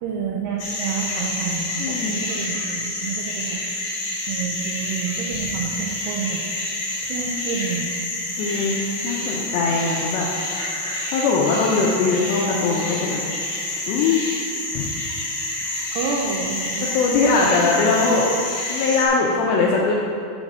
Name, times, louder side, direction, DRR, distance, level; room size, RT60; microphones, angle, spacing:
voice 1, 0.0-3.6 4.3-6.4 7.1-7.8 15.9-16.9 17.2-17.6, right 6 dB, 85° right, -2 dB, 2.3 m, -29 dB
sound 1, 0.6-19.1, left 2 dB, 40° left, 2.6 m, -28 dB
voice 2, 1.8-2.3 8.4-8.8 9.0-10.3 11.1-13.2 13.8-14.2 14.7-14.9 15.6-15.7 16.8-18.3 18.7-20.0, left 4 dB, 85° left, -2 dB, 2.6 m, -21 dB
7.3 x 5.3 x 7.3 m, 2.5 s
omnidirectional pair, 5.7 m